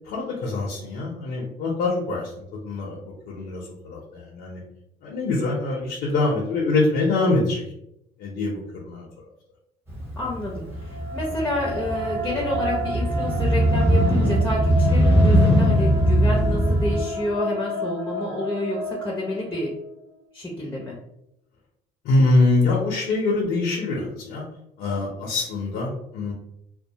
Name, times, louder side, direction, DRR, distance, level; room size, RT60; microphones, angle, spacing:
voice 1, 0.0-4.6 5.0-7.6 8.2-9.1 22.0-24.4 24.8-26.3, left 2 dB, 80° left, -3 dB, 0.6 m, -24 dB
Motorcycle, 9.9-17.0, equal, 15° right, 0.9 m, -20 dB
voice 2, 10.2-19.7 20.3-21.0, left 1 dB, 10° left, -3 dB, 0.6 m, -29 dB
sound 1, 10.7-19.9, equal, 65° right, 0.9 m, -32 dB
2.2 x 2.1 x 2.7 m, 0.78 s
cardioid pair, 110°, 17 cm